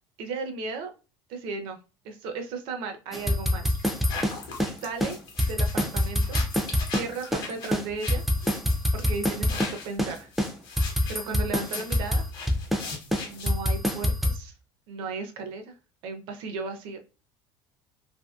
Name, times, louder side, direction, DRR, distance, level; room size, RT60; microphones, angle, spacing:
voice 1, 0.2-0.9 1.3-1.8 2.0-3.7 4.7-5.2 5.5-6.4 6.7-8.2 8.9-10.3 11.1-12.3 13.3-14.5 14.9-15.7 16.0-17.0, right 4 dB, 60° right, 5 dB, 0.5 m, -35 dB
sound 1, 3.1-4.7 5.0-5.1 5.4-7.5 7.7-9.7 10.0-10.1 10.4-12.8 13.1-14.4, equal, ahead, 0.3 m, -25 dB
sound 2, 3.6-13.8, left 4 dB, 50° left, 0.9 m, -40 dB
2.6 x 2.6 x 2.3 m, 0.32 s
cardioid pair, 170°, 10 cm